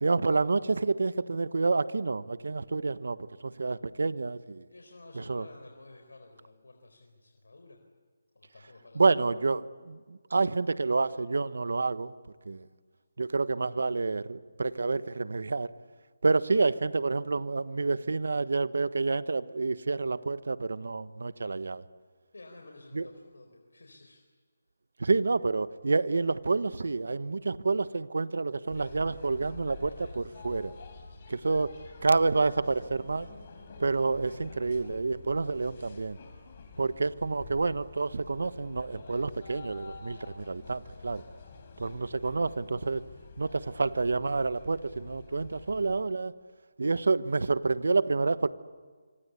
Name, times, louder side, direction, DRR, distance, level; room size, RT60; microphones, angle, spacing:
voice 1, 0.0-4.6 5.1-5.5 8.9-12.1 12.4-12.7 13.2-15.7 16.2-21.8 22.9-23.1 25.0-30.7 31.3-31.7 32.0-33.3 33.8-36.2 36.8-41.2 41.8-43.0 43.4-46.3 46.8-48.5, right 3 dB, 75° right, 15 dB, 1.2 m, -28 dB
voice 2, 4.7-7.8 8.3-9.1 22.3-24.2 31.5-31.7 41.7-42.2, left 2 dB, 85° left, 3 dB, 4.4 m, -52 dB
sound 1, 28.7-46.0, left 4 dB, 40° left, 5.6 m, -49 dB
25.5 x 25.0 x 8.4 m, 1.5 s
figure-of-eight pair, 160°, 0 cm